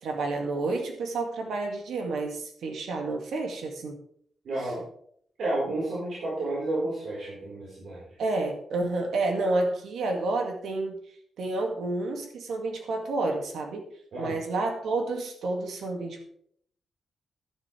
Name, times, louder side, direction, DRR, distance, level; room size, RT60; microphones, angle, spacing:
voice 1, 0.0-4.0 8.2-11.0 11.4-13.8 14.2-16.2, right 2 dB, 90° right, 3 dB, 2.1 m, -30 dB
voice 2, 4.4-4.8 5.4-8.0 14.1-14.4, right 2 dB, 70° right, -7 dB, 4.4 m, -31 dB
11.5 x 10.5 x 3.4 m, 0.65 s
wide cardioid pair, 135°, 0 cm